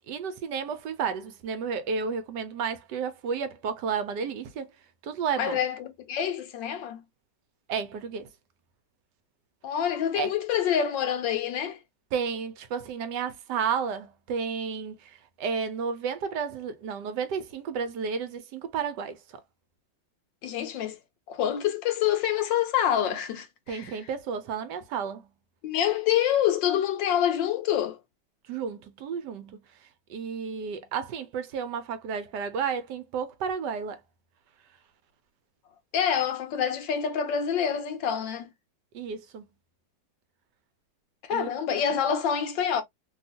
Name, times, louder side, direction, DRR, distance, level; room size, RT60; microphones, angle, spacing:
voice 1, 0.1-4.7 5.0-5.6 7.7-8.3 10.1-10.3 12.1-19.2 23.7-25.3 28.5-29.6 30.1-34.0 38.9-39.4 41.3-41.5, right 6 dB, 75° right, 1.2 m, -32 dB
voice 2, 5.4-7.0 9.6-11.8 20.4-21.0 21.3-24.0 25.6-28.0 35.9-38.5 41.2-42.8, left 9 dB, 85° left, 1.5 m, -27 dB
3.4 x 2.3 x 2.7 m
omnidirectional pair, 2.0 m